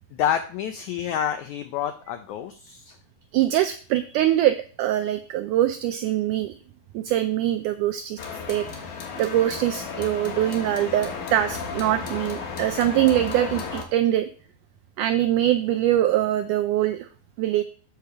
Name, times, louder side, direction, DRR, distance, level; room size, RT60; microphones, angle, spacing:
voice 1, 0.1-2.9, left 9 dB, 85° left, 8 dB, 1.6 m, -28 dB
voice 2, 3.3-6.5 6.9-8.2 8.5-8.7 9.2-14.3 15.0-17.1 17.4-17.6, right 13 dB, 85° right, 8 dB, 1.8 m, -23 dB
sound 1, 8.2-13.8, left 5 dB, 60° left, 2.7 m, -34 dB
8.2 x 4.9 x 6.8 m, 0.42 s
omnidirectional pair, 4.2 m